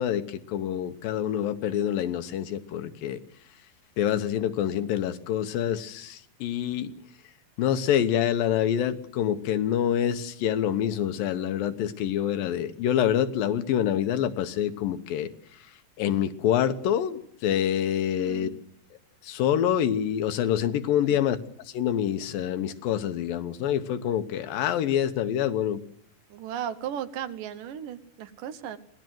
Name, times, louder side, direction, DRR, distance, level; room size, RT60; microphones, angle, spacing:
voice 1, 0.0-3.2 4.0-6.9 7.6-15.3 16.0-18.5 19.2-21.4 21.7-25.8, left 10 dB, 85° left, 10 dB, 2.8 m, -26 dB
voice 2, 18.2-18.5 21.1-21.2 26.3-28.8, right 9 dB, 75° right, 11 dB, 2.6 m, -36 dB
25.0 x 18.5 x 7.7 m, 0.72 s
omnidirectional pair, 4.0 m